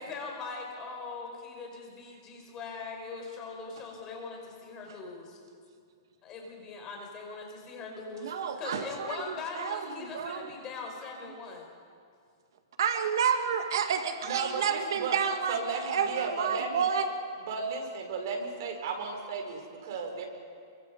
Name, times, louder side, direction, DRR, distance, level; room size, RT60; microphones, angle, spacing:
voice 1, 0.0-5.2 6.2-11.6, left 4 dB, 25° left, 1 dB, 5.1 m, -41 dB
voice 2, 8.2-10.5 12.8-17.1, right 7 dB, 75° right, 5 dB, 1.9 m, -30 dB
voice 3, 14.2-15.2 15.5-16.9 17.5-20.2, right 4 dB, 55° right, 3 dB, 4.5 m, -34 dB
28.5 x 24.5 x 5.3 m, 2.3 s
hypercardioid pair, 160°, 2 cm